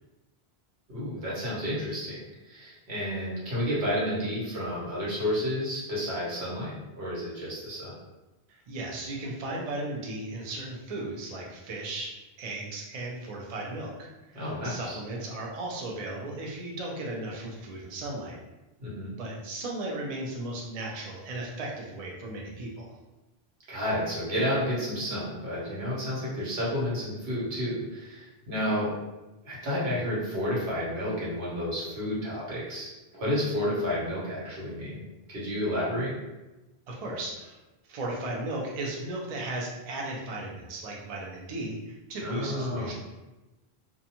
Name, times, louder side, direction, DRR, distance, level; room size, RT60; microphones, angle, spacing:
voice 1, 0.9-8.0 14.3-15.0 18.8-19.1 23.7-28.9 29.4-35.0 35.3-36.1 42.2-42.9, equal, 85° right, -7 dB, 1.3 m, -31 dB
voice 2, 8.5-18.4 19.2-23.0 36.9-37.6 37.9-42.9, right 2 dB, 50° right, -2 dB, 0.5 m, -36 dB
2.5 x 2.3 x 2.8 m, 1.1 s
omnidirectional pair, 1.1 m